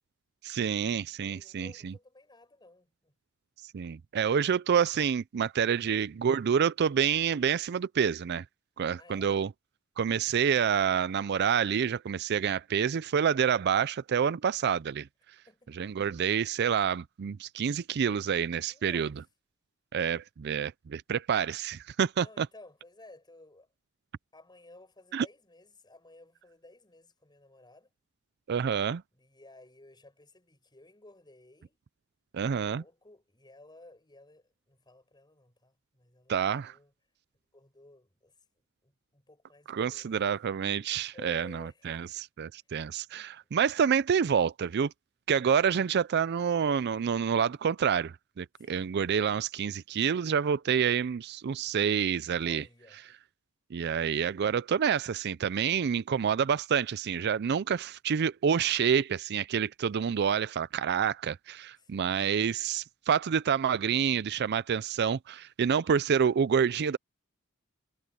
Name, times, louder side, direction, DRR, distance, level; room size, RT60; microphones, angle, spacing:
voice 1, 0.4-1.9 3.7-8.4 8.8-9.5 10.0-15.1 15.7-19.1 19.9-22.5 25.1-25.3 28.5-29.0 32.3-32.8 36.3-36.7 39.7-44.9 45.3-52.6 53.7-67.0, right 7 dB, 50° right, 0.4 m, -28 dB
voice 2, 1.2-3.1 4.4-4.6 5.6-5.8 9.0-9.3 15.5-15.9 18.7-19.2 22.1-23.7 24.3-27.9 29.1-31.8 32.4-36.9 37.5-38.3 38.8-40.3 41.1-42.1 42.8-43.0 48.5-48.9 51.7-51.8 52.4-53.0 61.8-62.2, left 2 dB, 20° left, 5.9 m, -55 dB
head